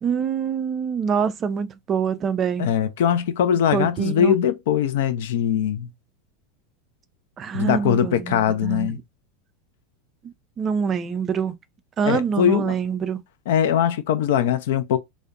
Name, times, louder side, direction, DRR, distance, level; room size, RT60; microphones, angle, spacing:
voice 1, 0.0-2.7 3.7-4.4 7.4-8.9 10.2-11.6 12.0-13.2, right 6 dB, 30° right, 0.3 m, -25 dB
voice 2, 2.6-5.9 7.5-9.0 12.0-12.8 13.5-15.0, left 9 dB, 60° left, 0.3 m, -21 dB
2.4 x 2.0 x 2.4 m
figure-of-eight pair, 85°, 0 cm